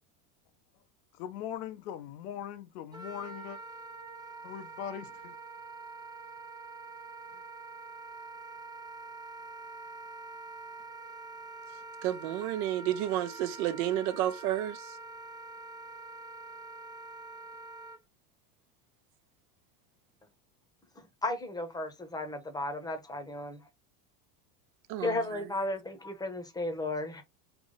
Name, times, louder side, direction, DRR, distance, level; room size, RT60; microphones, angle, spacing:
voice 1, 1.1-3.6 4.4-5.4, left 10 dB, 70° left, 0.8 m, -40 dB
Wind instrument woodwind instrument, 2.9-18.0, right 3 dB, 10° right, 0.3 m, -45 dB
voice 2, 12.0-15.0 24.9-25.4, right 12 dB, 70° right, 0.8 m, -31 dB
voice 3, 21.0-23.6 25.0-27.2, left 2 dB, 10° left, 0.9 m, -34 dB
3.5 x 3.0 x 3.9 m
supercardioid pair, 120°, 47 cm